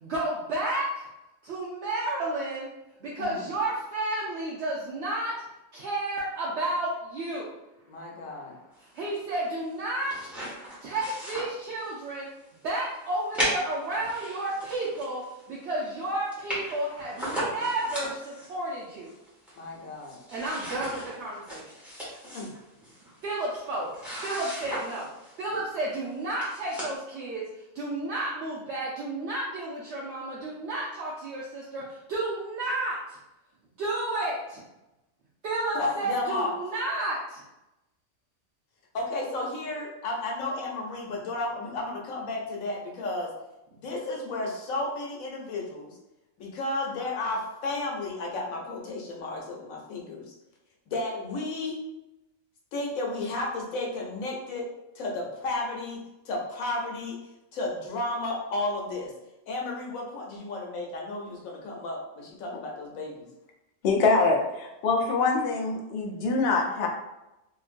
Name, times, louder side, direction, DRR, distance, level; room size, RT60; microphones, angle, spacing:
voice 1, 0.0-1.1 1.4-2.7 3.0-5.3 5.7-7.5 8.9-10.1 10.8-12.3 12.6-15.2 15.5-19.1 20.3-21.7 23.2-23.9 24.2-25.1 25.4-27.4 27.7-33.2 33.8-34.6 35.4-37.4, right 2 dB, 65° right, -6 dB, 0.8 m, -31 dB
voice 2, 7.9-8.6 19.6-20.2 22.2-22.5 35.7-36.6 38.9-43.3 43.8-46.0 46.4-50.3 50.9-51.8 52.7-54.7 54.9-56.0 56.2-57.2 57.5-59.1 59.5-63.3, left 2 dB, 90° left, -1 dB, 1.2 m, -33 dB
sound 1, 9.7-12.1 12.5-12.6 13.3-15.4 15.8-15.9 16.0-16.1 16.3-18.5 19.0-19.7 20.0-25.4 26.0-26.1 26.4-27.0, equal, ahead, 0.8 m, -36 dB
voice 3, 63.8-66.9, left 3 dB, 60° left, 0 dB, 0.7 m, -24 dB
2.9 x 2.6 x 2.5 m, 0.92 s
omnidirectional pair, 1.4 m